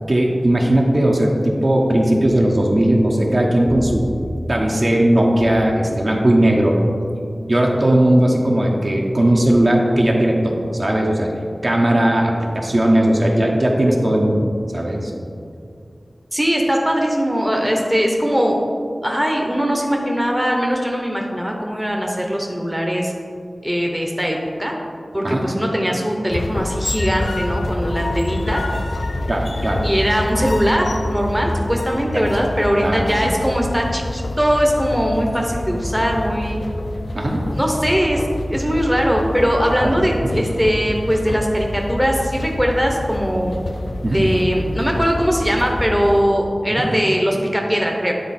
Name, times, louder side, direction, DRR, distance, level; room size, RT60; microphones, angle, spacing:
voice 1, 0.1-4.1 4.5-6.8 7.5-11.3 11.6-14.4 14.7-15.2 25.2-25.5 29.3-29.8 32.1-32.2 32.8-33.3 37.1-37.4 39.8-40.0 40.2-40.3 44.0-44.2 46.7-46.9, right 1 dB, 50° right, -1 dB, 1.0 m, -17 dB
voice 2, 16.3-18.6 19.0-23.1 23.6-24.7 25.1-28.6 29.8-36.6 37.5-38.2 38.5-43.6 44.1-48.1, equal, 5° right, 0 dB, 0.8 m, -20 dB
sound 1, 26.3-46.2, left 1 dB, 75° left, 0.4 m, -27 dB
9.5 x 3.9 x 4.2 m, 2.4 s
wide cardioid pair, 55°, 0 cm